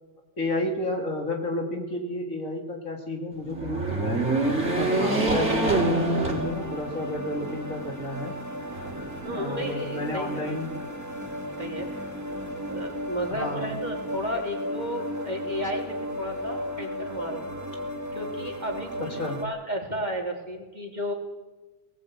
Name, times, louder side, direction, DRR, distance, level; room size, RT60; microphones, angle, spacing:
voice 1, 0.4-4.2 4.7-8.3 9.3-10.8 13.3-13.7 19.0-19.4, left 1 dB, 55° left, 2 dB, 3.1 m, -31 dB
sound 1, 3.5-7.1 7.5-7.6 8.7-9.5, right 2 dB, 45° right, 3.8 m, -25 dB
sound 2, 4.4-19.4, equal, 10° right, 2.2 m, -35 dB
voice 2, 9.2-10.4 11.6-12.1 12.7-17.5 18.1-21.1, equal, 25° right, 1 dB, 3.6 m, -33 dB
20.0 x 18.5 x 8.5 m, 1.2 s
omnidirectional pair, 1.7 m